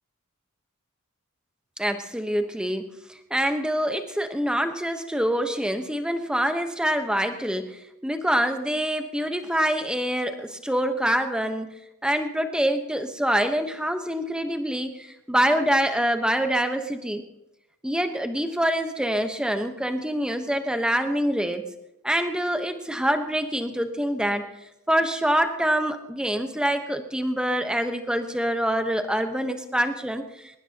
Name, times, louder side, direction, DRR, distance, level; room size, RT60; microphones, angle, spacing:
voice 1, 1.8-2.9 3.3-7.7 8.0-11.7 12.0-17.2 17.8-21.6 22.0-24.4 24.9-30.2, equal, 5° right, 6 dB, 1.1 m, -25 dB
22.5 x 20.0 x 2.9 m, 0.88 s
head